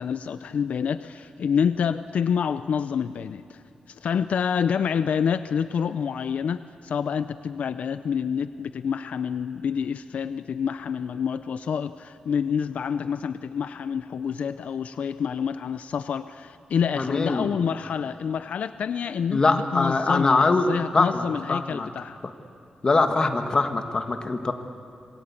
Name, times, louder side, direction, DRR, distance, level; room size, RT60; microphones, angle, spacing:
voice 1, 0.0-3.6 3.9-22.2, left 7 dB, 80° left, 12 dB, 0.6 m, -27 dB
voice 2, 16.9-17.5 19.3-20.7 20.9-21.9 22.8-24.5, left 3 dB, 35° left, 6 dB, 1.6 m, -23 dB
26.5 x 21.5 x 8.5 m, 2.6 s
wide cardioid pair, 130°, 2 cm